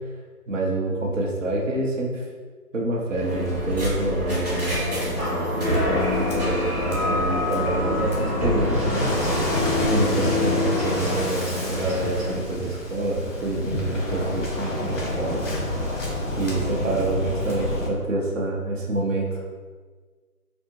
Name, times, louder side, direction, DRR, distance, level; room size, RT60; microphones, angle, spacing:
voice 1, 0.5-2.2 2.7-9.1 9.8-15.4 16.4-19.4, right 2 dB, 55° right, -2 dB, 0.7 m, -27 dB
Waves surf, 3.1-17.9, left 1 dB, 55° left, 1.0 m, -29 dB
sound 1, 3.2-12.3, left 1 dB, 25° right, 1.1 m, -28 dB
sound 2, 5.1-11.2, left 3 dB, ahead, 0.5 m, -29 dB
3.4 x 2.1 x 3.0 m, 1.4 s
figure-of-eight pair, 155°, 46 cm